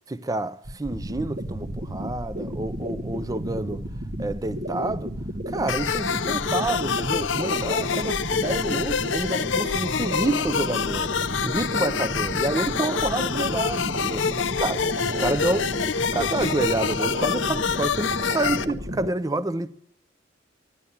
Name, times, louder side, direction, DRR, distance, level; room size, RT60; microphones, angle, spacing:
voice 1, 0.1-3.8 4.2-5.1 5.5-11.1 11.4-14.3 14.6-15.6 16.1-19.7, right 2 dB, 20° right, 0.5 m, -28 dB
sound 1, 0.6-19.1, equal, 50° right, 1.0 m, -32 dB
sound 2, 5.7-18.6, left 6 dB, 90° left, 0.6 m, -27 dB
14.0 x 11.0 x 7.1 m
head